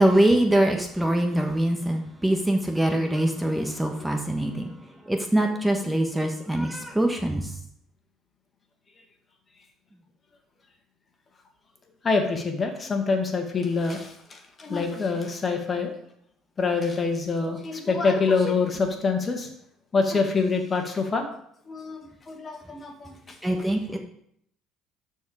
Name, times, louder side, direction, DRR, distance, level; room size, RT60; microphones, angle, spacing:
voice 1, 0.0-4.7 5.1-7.5 23.4-24.0, right 1 dB, 10° right, 3 dB, 1.4 m, -23 dB
voice 2, 12.0-16.0 16.6-19.5 19.9-21.2 21.7-22.0 22.3-23.4, left 4 dB, 35° left, 4 dB, 1.9 m, -25 dB
12.5 x 4.7 x 5.0 m, 0.69 s
supercardioid pair, 80°, 0 cm